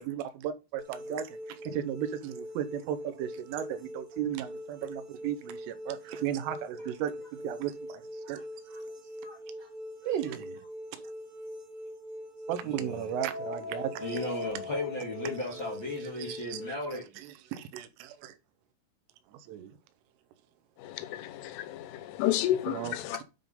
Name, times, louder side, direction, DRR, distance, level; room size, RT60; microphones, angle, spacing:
voice 1, 0.0-8.0 8.3-8.4 10.1-10.6 10.9-11.0 12.5-14.3 16.2-16.6 17.5-18.4 19.4-19.7 22.7-23.2, right 11 dB, 90° right, 3.3 m, -35 dB
sound 1, 0.8-16.7, equal, 40° right, 1.4 m, -43 dB
voice 2, 9.2-9.7 12.7-13.1 14.0-17.0, left 1 dB, 55° left, 1.3 m, -36 dB
sound 2, 13.2-16.0, left 3 dB, 25° right, 0.9 m, -41 dB
voice 3, 21.0-23.2, left 13 dB, 85° left, 3.2 m, -31 dB
9.1 x 3.6 x 5.5 m
omnidirectional pair, 5.7 m